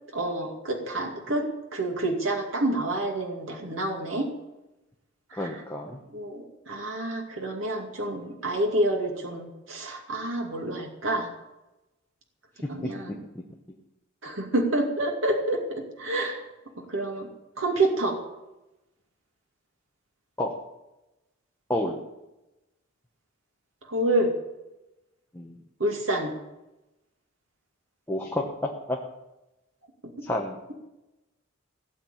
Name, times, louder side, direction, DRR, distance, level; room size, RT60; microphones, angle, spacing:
voice 1, 0.1-1.5 1.7-4.3 5.3-5.5 6.1-11.3 12.7-13.2 14.2-16.4 16.9-17.3 17.6-18.2 23.9-24.3 25.8-26.3, right 1 dB, 80° right, 2 dB, 2.4 m, -28 dB
voice 2, 5.3-6.0 12.8-13.2 20.4-20.5 21.7-22.0 25.3-25.6 28.1-29.0 30.2-30.6, left 1 dB, 10° left, -1 dB, 1.3 m, -30 dB
17.0 x 7.8 x 8.9 m, 0.97 s
head